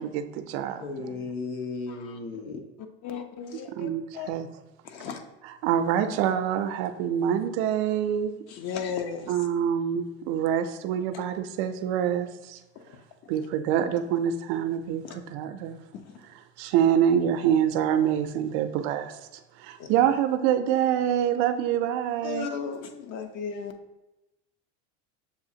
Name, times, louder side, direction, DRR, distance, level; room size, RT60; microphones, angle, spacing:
voice 1, 0.0-1.1 3.8-4.5 5.4-8.3 9.3-12.6 13.3-15.8 16.6-19.1 19.6-22.5, right 9 dB, 65° right, 8 dB, 0.5 m, -26 dB
voice 2, 0.8-2.6, left 4 dB, 80° left, 3 dB, 0.9 m, -35 dB
voice 3, 1.9-2.2 3.0-4.3 4.8-5.2 8.5-9.3 13.2-13.4 15.0-15.2 15.9-16.0 19.8-20.1 22.2-23.7, left 7 dB, 50° left, 6 dB, 0.6 m, -35 dB
6.9 x 2.4 x 2.7 m, 0.97 s
supercardioid pair, 110°, 33 cm